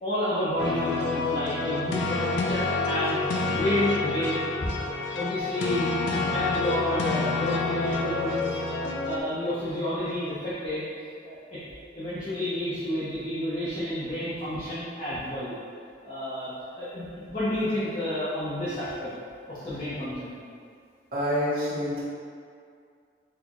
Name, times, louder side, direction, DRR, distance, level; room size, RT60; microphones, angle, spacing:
voice 1, 0.0-4.8 5.1-8.6 9.0-10.8 11.2-11.6 12.0-15.5 16.0-19.1 19.5-20.3, left 1 dB, 35° left, -13 dB, 0.6 m, -30 dB
sound 1, 0.6-9.2, left 3 dB, 85° left, 0.3 m, -28 dB
voice 2, 21.1-22.0, equal, 50° right, -10 dB, 0.7 m, -28 dB
4.2 x 2.1 x 2.9 m, 2.3 s
head